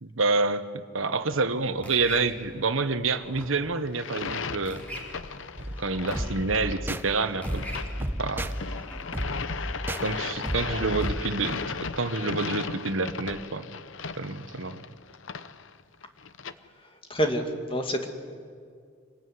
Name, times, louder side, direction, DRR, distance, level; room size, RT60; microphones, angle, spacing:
voice 1, 0.0-4.8 5.8-7.7 8.2-8.5 10.0-13.7 14.2-14.9, right 3 dB, 90° right, 11 dB, 1.3 m, -28 dB
sound 1, 1.0-9.0, equal, 5° left, 4.1 m, -45 dB
sound 2, 3.9-16.5, left 5 dB, 75° left, 0.9 m, -37 dB
sound 3, 5.6-11.2, equal, 10° right, 0.8 m, -34 dB
voice 2, 16.8-18.1, equal, 25° left, 5 dB, 2.3 m, -28 dB
26.0 x 20.5 x 9.6 m, 2.1 s
head